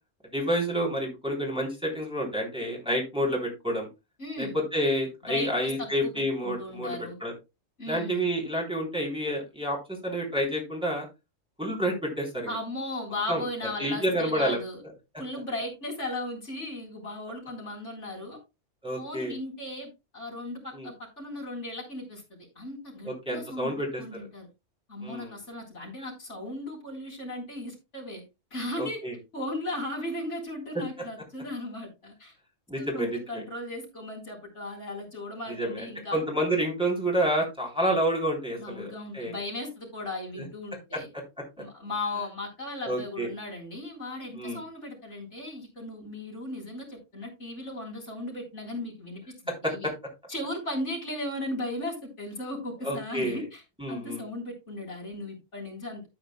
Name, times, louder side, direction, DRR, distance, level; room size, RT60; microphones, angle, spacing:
voice 1, 0.3-3.9 4.4-7.3 7.9-9.8 10.0-11.1 11.6-12.5 13.3-13.4 13.8-14.6 18.8-19.3 20.7-20.9 23.0-24.0 25.0-25.3 28.8-29.1 32.7-33.4 35.5-39.3 40.9-41.0 42.8-43.3 44.3-44.6 49.6-49.9 52.8-53.4 53.8-54.2, equal, 5° right, -1 dB, 3.3 m, -29 dB
voice 2, 4.2-4.6 5.3-5.9 6.2-7.2 7.8-8.3 12.5-14.8 15.2-18.4 18.9-23.7 24.0-24.5 24.9-28.2 28.5-29.0 29.3-32.3 32.8-36.2 38.6-41.1 41.6-49.9 50.3-53.6 53.9-56.1, left 1 dB, 65° left, -1 dB, 4.3 m, -36 dB
12.5 x 8.9 x 2.2 m, 0.24 s
omnidirectional pair, 1.3 m